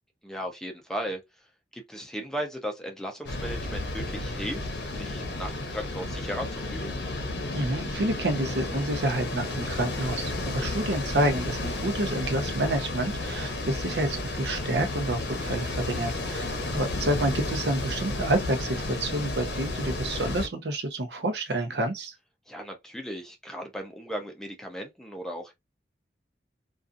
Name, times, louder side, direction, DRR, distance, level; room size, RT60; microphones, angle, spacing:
voice 1, 0.2-1.2 1.7-6.9 22.5-25.5, equal, 5° left, 0.5 m, -36 dB
sound 1, 3.2-20.5, left 2 dB, 70° left, 0.7 m, -32 dB
voice 2, 7.5-22.1, right 1 dB, 70° right, 0.6 m, -29 dB
2.5 x 2.4 x 2.5 m
head